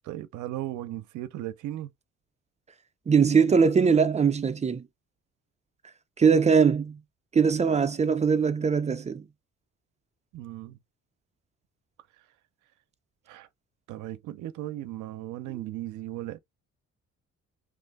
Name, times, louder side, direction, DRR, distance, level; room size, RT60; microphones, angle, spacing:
voice 1, 0.0-1.9 10.3-10.8 12.2-12.3 13.3-13.5 13.9-16.4, right 14 dB, 80° right, 0.5 m, -36 dB
voice 2, 3.1-4.9 6.2-7.0 7.3-9.2, right 6 dB, 25° right, 0.4 m, -21 dB
2.5 x 2.4 x 3.4 m
cardioid pair, 90°, 30 cm